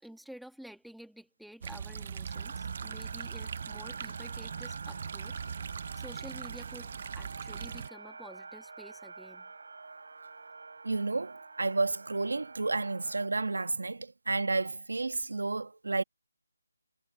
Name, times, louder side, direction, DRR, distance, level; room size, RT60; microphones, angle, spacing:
voice 1, 0.0-5.4 5.9-9.5 10.2-10.6, equal, ahead, 2.0 m, -51 dB
sound 1, 1.6-7.9, right 7 dB, 30° right, 0.7 m, -40 dB
sound 2, 2.3-13.3, right 3 dB, 70° right, 3.1 m, -47 dB
voice 2, 10.8-16.0, right 3 dB, 90° right, 1.5 m, -31 dB
hypercardioid pair, 175°, 0 cm